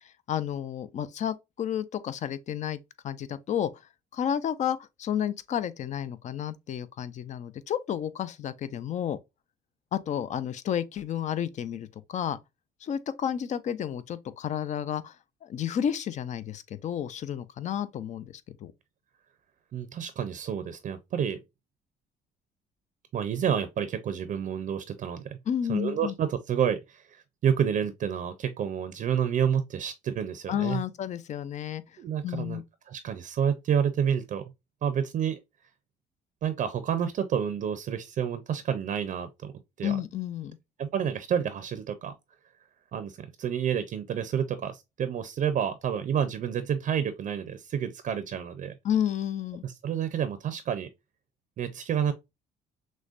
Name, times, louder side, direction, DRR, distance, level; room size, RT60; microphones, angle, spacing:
voice 1, 0.3-2.8 3.0-3.7 4.1-9.2 9.9-12.4 12.8-15.1 15.4-18.7 25.5-26.1 30.5-31.8 32.2-32.6 39.8-40.6 48.8-49.6, left 9 dB, 45° left, 0.5 m, -31 dB
voice 2, 19.7-21.4 23.1-25.4 25.7-30.8 32.0-32.6 32.9-34.4 34.8-35.4 36.4-39.5 39.8-40.0 40.8-42.1 42.9-48.8 49.6-50.9 51.6-52.1, right 8 dB, 50° right, 0.6 m, -29 dB
6.2 x 2.2 x 2.4 m
cardioid pair, 110°, 17 cm